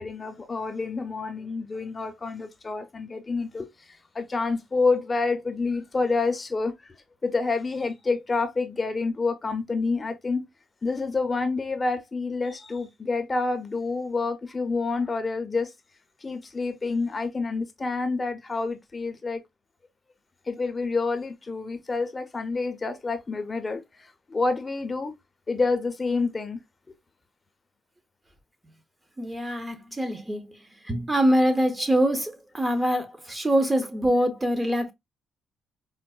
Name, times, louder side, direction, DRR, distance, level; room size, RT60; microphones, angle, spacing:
voice 1, 0.0-6.9 7.2-10.4 10.8-15.7 16.2-19.4 20.5-25.1 25.5-26.6 26.9-27.0, left 3 dB, 30° left, 0.5 m, -28 dB
voice 2, 29.2-30.6 30.8-34.9, equal, 15° right, 0.7 m, -24 dB
4.5 x 2.0 x 2.3 m
cardioid pair, 90°, 0 cm